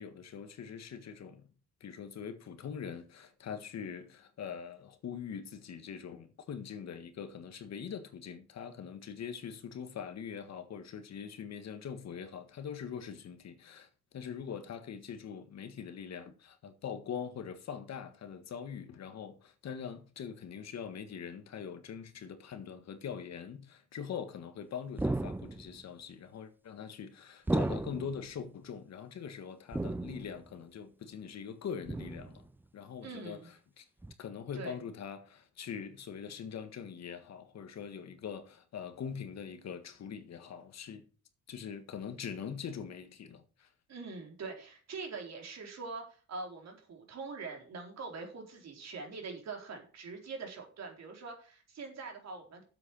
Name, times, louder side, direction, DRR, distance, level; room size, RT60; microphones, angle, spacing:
voice 1, 0.0-1.5 1.8-32.5 32.7-33.8 34.2-41.0 41.5-43.7, left 7 dB, 60° left, 1.7 m, -43 dB
sound 1, 25.0-25.8 27.5-28.3 29.7-30.5 31.9-32.4 34.0-34.1, right 2 dB, 5° right, 0.4 m, -34 dB
voice 2, 33.0-33.5 34.5-34.8 43.9-52.6, right 4 dB, 60° right, 4.0 m, -43 dB
7.8 x 7.8 x 6.2 m
cardioid pair, 90°, 30 cm